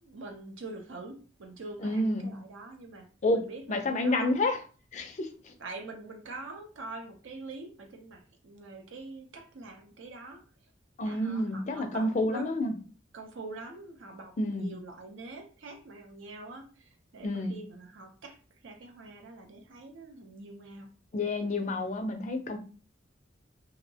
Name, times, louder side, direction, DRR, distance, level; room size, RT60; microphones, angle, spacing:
voice 1, 0.0-4.3 5.6-10.4 11.0-12.6 13.1-18.4 18.6-20.9, right 3 dB, 75° right, 0.5 m, -45 dB
voice 2, 1.8-2.4 3.2-3.4 3.7-4.6 4.9-5.5 11.0-12.7 14.4-14.7 17.2-17.5 21.1-22.6, left 1 dB, 35° left, 0.4 m, -29 dB
2.7 x 2.0 x 2.6 m
head